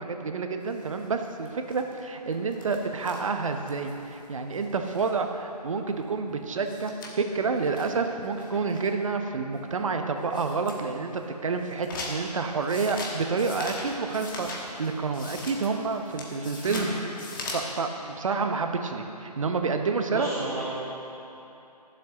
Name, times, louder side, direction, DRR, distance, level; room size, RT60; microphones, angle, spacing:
voice 1, 0.0-14.5 14.8-16.9 17.5-20.3, right 4 dB, 50° right, 5 dB, 0.9 m, -29 dB
sound 1, 0.7-5.2 5.6-5.7 5.9-6.0 6.3-6.4 6.6-9.0 9.6-9.7 10.2-10.8 11.1-17.7, left 2 dB, 30° left, 1.3 m, -40 dB
voice 2, 20.1-20.6, right 1 dB, 10° right, -12 dB, 2.1 m, -33 dB
21.5 x 7.5 x 2.9 m, 2.8 s
figure-of-eight pair, 145°, 21 cm